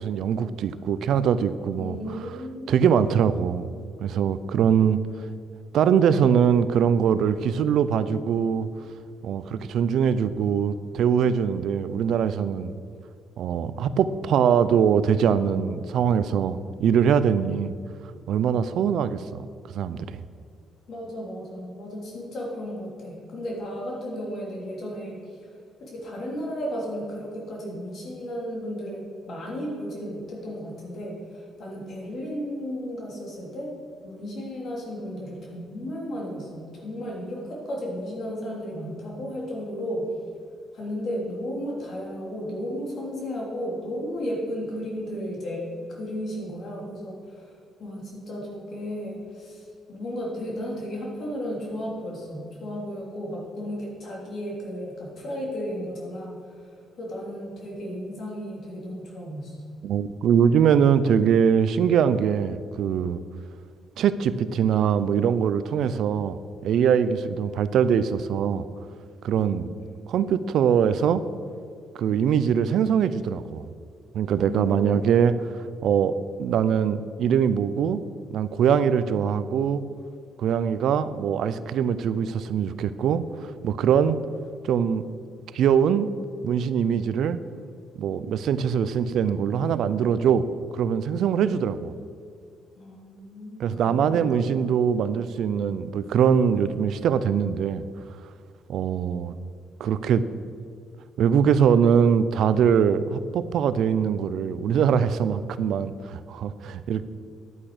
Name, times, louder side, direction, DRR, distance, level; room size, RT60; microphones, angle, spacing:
voice 1, 0.0-2.0 2.7-3.7 4.0-5.0 5.7-8.7 9.2-12.7 13.4-17.7 18.3-19.5 19.7-20.2 59.8-63.2 64.0-66.4 66.6-68.6 69.2-69.7 70.1-71.2 72.0-73.7 74.1-75.4 75.8-78.0 78.3-79.8 80.4-84.2 84.6-85.0 85.5-86.1 86.4-87.4 88.0-90.4 90.7-91.9 93.6-97.8 98.7-99.3 99.8-100.2 101.2-107.0, right 7 dB, 75° right, 14 dB, 0.5 m, -22 dB
voice 2, 1.8-2.9 20.9-25.2 25.8-33.7 34.0-40.1 40.7-47.5 47.8-56.6 57.0-59.6 69.8-69.9 74.4-75.2 92.8-94.5, equal, 60° left, -2 dB, 3.3 m, -34 dB
11.0 x 8.6 x 5.0 m, 2.2 s
cardioid pair, 95°, 0 cm